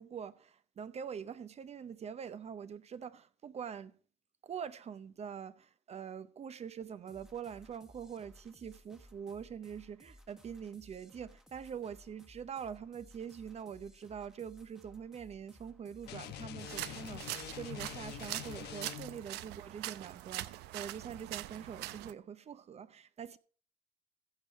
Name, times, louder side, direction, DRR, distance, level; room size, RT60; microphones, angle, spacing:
voice 1, 0.0-3.9 4.4-23.4, right 7 dB, 40° right, 0.6 m, -44 dB
sound 1, 7.1-18.8, equal, 5° right, 1.2 m, -60 dB
sound 2, 16.1-19.3, left 12 dB, 75° left, 1.0 m, -45 dB
sound 3, 16.6-22.1, right 15 dB, 90° right, 0.6 m, -43 dB
15.0 x 7.0 x 4.6 m
cardioid pair, 110°, 17 cm